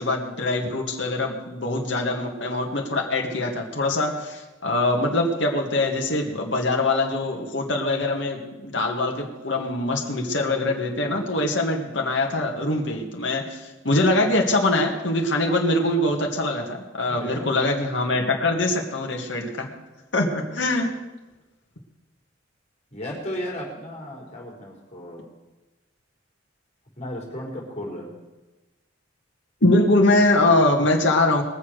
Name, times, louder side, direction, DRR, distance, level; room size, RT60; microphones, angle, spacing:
voice 1, 0.0-19.7 20.1-20.9 29.6-31.4, left 2 dB, 70° left, 1 dB, 2.1 m, -23 dB
voice 2, 17.1-17.5 22.9-25.2 27.0-28.1, equal, 35° left, -2 dB, 4.7 m, -34 dB
21.5 x 7.1 x 6.5 m, 1.1 s
head